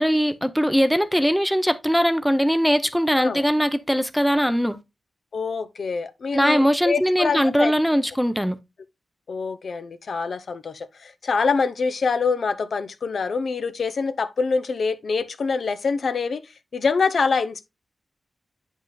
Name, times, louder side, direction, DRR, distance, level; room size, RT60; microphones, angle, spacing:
voice 1, 0.0-4.8 6.3-8.6, equal, ahead, 0.6 m, -20 dB
voice 2, 5.3-7.7 9.3-16.4 16.7-17.7, left 4 dB, 65° left, 0.6 m, -25 dB
8.9 x 5.4 x 2.3 m
wide cardioid pair, 110°, 0 cm